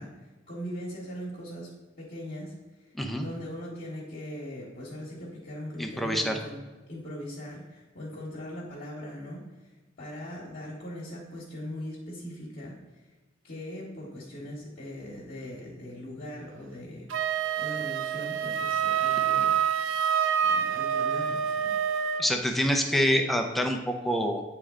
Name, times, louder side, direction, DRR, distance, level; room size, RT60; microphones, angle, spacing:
voice 1, 0.0-1.7 2.0-2.5 2.8-2.9 3.2-6.6 6.9-9.7 10.0-13.0 13.4-19.6 20.4-21.7, left 1 dB, 50° left, -6 dB, 1.2 m, -40 dB
voice 2, 2.9-3.3 5.8-6.4 22.2-24.4, equal, ahead, 3 dB, 0.5 m, -26 dB
Wind instrument woodwind instrument, 17.1-22.3, right 8 dB, 70° right, 0.3 m, -27 dB
8.2 x 3.3 x 3.6 m, 1.2 s
head